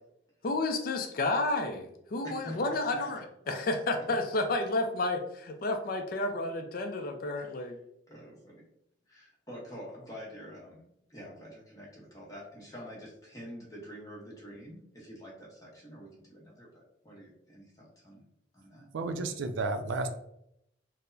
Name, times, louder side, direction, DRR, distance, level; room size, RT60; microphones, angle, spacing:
voice 1, 0.4-7.8, left 2 dB, 50° left, 5 dB, 0.4 m, -31 dB
voice 2, 2.2-3.0 7.3-7.7 8.1-8.7 9.1-10.8 11.1-18.2 18.5-18.9, equal, 20° left, -4 dB, 0.9 m, -46 dB
voice 3, 18.9-20.1, right 3 dB, 90° right, 8 dB, 0.4 m, -32 dB
4.4 x 2.0 x 2.6 m, 0.77 s
head